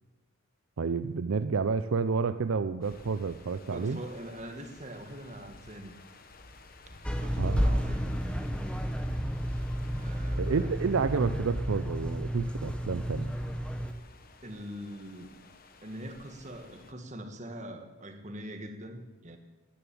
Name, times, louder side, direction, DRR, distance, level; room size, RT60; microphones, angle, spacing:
voice 1, 0.8-4.0 7.4-7.6 10.4-13.3, right 5 dB, 65° right, 11 dB, 0.5 m, -30 dB
sound 1, 2.8-16.9, left 2 dB, 40° left, 1.1 m, -51 dB
voice 2, 3.7-6.0 7.2-8.2 9.9-10.7 14.4-15.3 15.8-19.4, equal, 30° right, 5 dB, 1.6 m, -43 dB
sound 2, 7.0-13.9, equal, 5° left, 0.8 m, -31 dB
14.0 x 10.5 x 8.7 m, 1.3 s
head